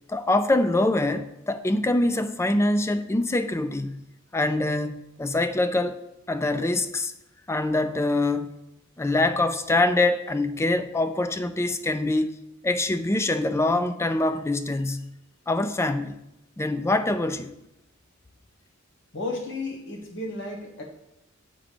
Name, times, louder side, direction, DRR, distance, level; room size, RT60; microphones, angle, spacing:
voice 1, 0.1-4.0 4.3-6.0 6.3-7.1 7.5-8.5 9.0-12.4 12.6-15.1 15.5-16.1 16.6-17.5, left 2 dB, 15° left, 0.4 m, -24 dB
voice 2, 19.1-20.8, left 2 dB, 60° left, 1.4 m, -33 dB
8.9 x 3.7 x 5.1 m
head